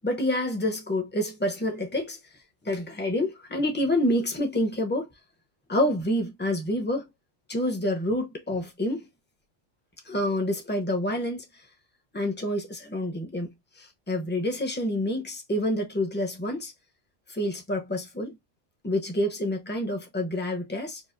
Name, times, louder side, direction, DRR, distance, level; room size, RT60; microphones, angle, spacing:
voice 1, 0.0-2.2 2.6-5.1 5.7-7.1 7.5-9.1 10.0-11.4 12.1-16.7 17.3-18.4 18.8-21.0, left 1 dB, 10° left, 0.6 m, -28 dB
4.6 x 2.0 x 2.5 m
omnidirectional pair, 1.3 m